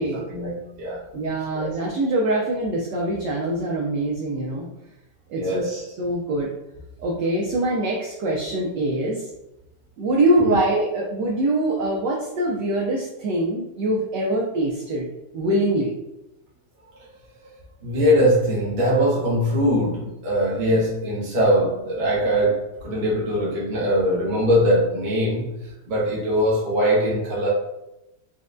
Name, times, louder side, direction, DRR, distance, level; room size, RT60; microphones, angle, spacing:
voice 1, 0.0-1.0 1.5-1.7 5.4-5.8 10.4-10.6 17.8-25.5 25.9-27.5, equal, 50° right, -6 dB, 0.5 m, -21 dB
voice 2, 1.1-4.7 5.3-5.7 6.0-6.5 7.0-9.3 10.0-15.1 15.3-15.9, right 1 dB, 80° right, -2 dB, 0.9 m, -23 dB
4.2 x 2.1 x 2.5 m, 0.92 s
omnidirectional pair, 2.4 m